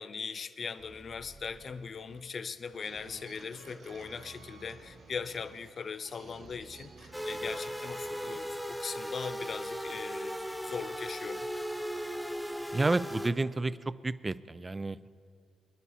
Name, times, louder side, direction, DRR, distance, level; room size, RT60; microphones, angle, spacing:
voice 1, 0.0-11.5, left 5 dB, 45° left, 12 dB, 0.4 m, -40 dB
sound 1, 0.8-8.7, right 3 dB, 65° right, 2.4 m, -53 dB
sound 2, 7.1-13.3, equal, ahead, 0.9 m, -37 dB
voice 2, 12.7-13.8 14.0-15.0, right 2 dB, 20° right, 16 dB, 0.3 m, -30 dB
26.5 x 9.9 x 2.8 m, 2.3 s
cardioid pair, 90°, 0 cm